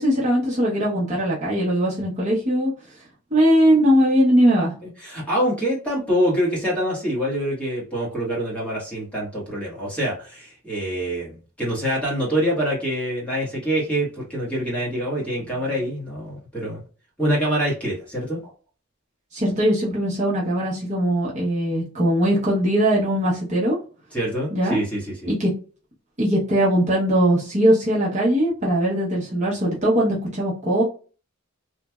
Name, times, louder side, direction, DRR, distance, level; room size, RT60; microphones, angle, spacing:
voice 1, 0.0-2.7 3.3-4.7 19.3-23.8 24.5-24.8 25.3-25.5 26.2-30.8, equal, 35° right, -6 dB, 0.9 m, -20 dB
voice 2, 4.8-16.8 17.2-18.5 24.1-25.3, equal, 5° left, -6 dB, 1.3 m, -25 dB
3.0 x 2.4 x 2.3 m, 0.37 s
head